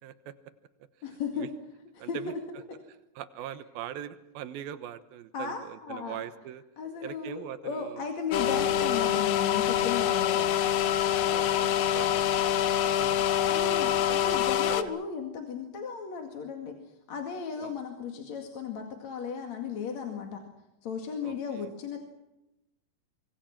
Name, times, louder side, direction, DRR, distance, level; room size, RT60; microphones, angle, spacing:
voice 1, 0.0-0.3 1.3-1.5 2.0-2.3 3.2-6.6 7.0-8.0 11.2-13.3 13.9-14.9 17.6-17.7 21.2-21.7, right 10 dB, 90° right, 12 dB, 3.0 m, -42 dB
voice 2, 1.0-1.5 2.0-2.4 5.3-6.2 6.8-10.5 13.5-20.4 20.8-22.0, left 6 dB, 55° left, 4 dB, 3.2 m, -35 dB
sound 1, 8.3-14.8, left 11 dB, 70° left, 2.1 m, -26 dB
sound 2, 8.4-14.3, right 4 dB, 60° right, 3.5 m, -43 dB
25.0 x 25.0 x 6.0 m, 0.91 s
omnidirectional pair, 4.1 m